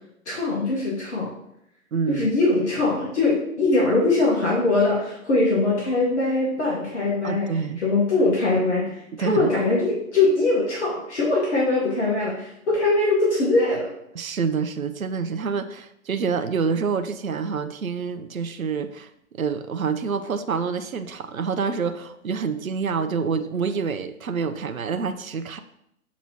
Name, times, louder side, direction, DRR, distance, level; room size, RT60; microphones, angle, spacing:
voice 1, 0.3-1.3 2.1-7.5 7.8-13.9, left 2 dB, 55° left, -4 dB, 1.9 m, -22 dB
voice 2, 1.9-2.3 7.2-7.8 9.2-9.5 14.1-19.1 19.4-25.6, right 5 dB, 80° right, 9 dB, 0.6 m, -27 dB
7.1 x 3.0 x 4.6 m, 0.76 s
figure-of-eight pair, 125°, 41 cm